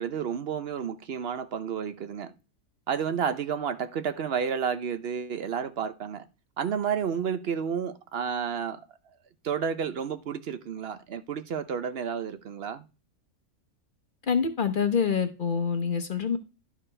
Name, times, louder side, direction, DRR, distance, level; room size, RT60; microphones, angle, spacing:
voice 1, 0.0-2.3 2.9-6.3 6.6-8.8 9.4-12.8, right 7 dB, 55° right, 0.7 m, -31 dB
voice 2, 14.2-16.4, left 6 dB, 40° left, 0.9 m, -26 dB
11.5 x 6.4 x 3.3 m
omnidirectional pair, 1.6 m